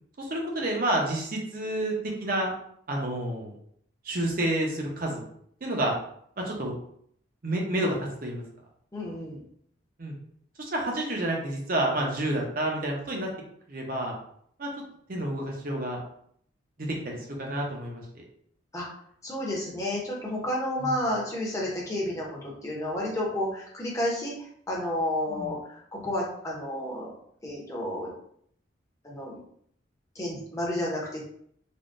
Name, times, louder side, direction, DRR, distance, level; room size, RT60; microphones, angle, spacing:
voice 1, 0.2-1.9 2.2-2.5 2.9-3.6 4.0-5.3 5.6-5.9 6.4-6.7 7.4-8.0 8.2-8.4 10.0-10.1 10.6-13.3 13.7-14.2 14.6-14.7 15.1-16.0 16.8-18.0 20.8-20.9 25.3-25.5, right 1 dB, 45° right, 0 dB, 0.7 m, -29 dB
voice 2, 8.9-9.4 18.7-18.8 19.2-24.3 24.7-27.1 27.4-28.1 29.0-29.4 30.1-31.2, left 1 dB, 15° left, -4 dB, 0.7 m, -31 dB
3.4 x 2.2 x 2.5 m, 0.67 s
head